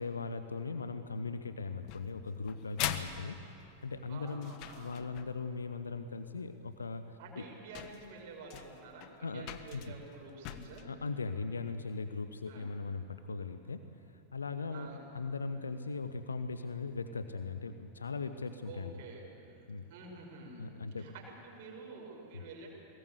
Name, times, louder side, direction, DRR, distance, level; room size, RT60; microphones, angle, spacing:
voice 1, 0.0-3.4 3.8-7.4 9.2-9.4 9.7-9.8 10.8-13.8 14.3-14.9 15.1-18.9 19.7-19.9 20.6-21.1, left 4 dB, 75° left, 10 dB, 0.9 m, -39 dB
sound 1, 1.9-5.5 6.8-6.9 7.5-7.6 7.7-10.9, left 12 dB, 45° left, 1.2 m, -42 dB
voice 2, 4.1-5.0 7.2-10.9 12.5-12.7 14.7-15.0 18.6-20.7 21.0-22.7, right 3 dB, 50° right, -1 dB, 5.8 m, -49 dB
22.5 x 18.5 x 8.1 m, 2.9 s
figure-of-eight pair, 90°, 0 cm